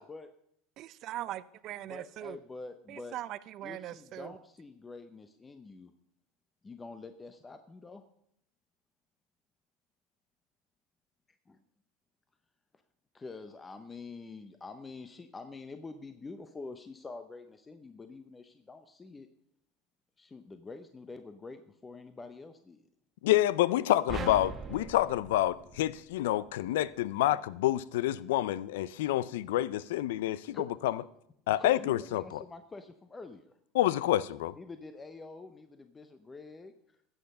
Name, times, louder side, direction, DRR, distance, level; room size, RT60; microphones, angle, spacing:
voice 1, 0.8-2.4 2.9-4.3, right 13 dB, 50° right, 0.5 m, -40 dB
voice 2, 1.8-3.1 3.6-5.9 6.6-8.0 11.5-11.6 13.1-19.3 20.2-22.8 30.5-30.7 31.6-33.6 34.6-36.7, left 3 dB, 15° left, 0.7 m, -46 dB
voice 3, 23.2-31.0 31.5-32.4 33.7-34.5, left 14 dB, 85° left, 0.5 m, -28 dB
sound 1, 24.1-26.5, right 4 dB, 25° right, 1.3 m, -41 dB
14.0 x 8.1 x 5.4 m
supercardioid pair, 115°, 0 cm